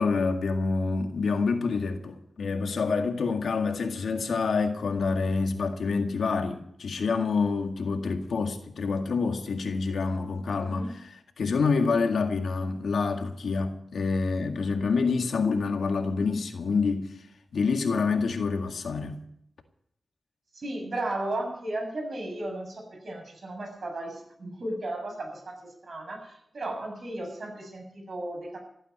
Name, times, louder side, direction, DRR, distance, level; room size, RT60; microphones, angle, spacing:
voice 1, 0.0-11.0 11.4-17.1 17.5-19.2, left 4 dB, 85° left, 2.0 m, -27 dB
voice 2, 10.6-10.9 20.5-28.6, right 1 dB, 65° right, 7.3 m, -35 dB
15.5 x 9.1 x 9.7 m
cardioid pair, 55°, 0 cm